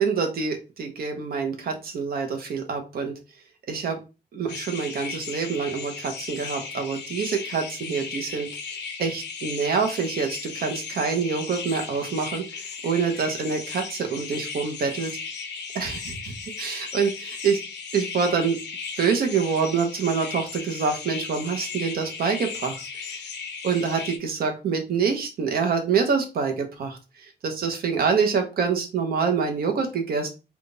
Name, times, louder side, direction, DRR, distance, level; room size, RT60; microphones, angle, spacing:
voice 1, 0.0-3.1 3.7-4.0 4.3-8.5 9.0-15.1 15.7-17.6 17.9-18.6 19.0-23.2 23.6-27.0 27.4-30.3, right 5 dB, 60° right, 4 dB, 0.9 m, -26 dB
sound 1, 4.5-24.2, left 5 dB, 85° left, 0.7 m, -36 dB
3.6 x 2.3 x 3.8 m, 0.30 s
wide cardioid pair, 155°, 18 cm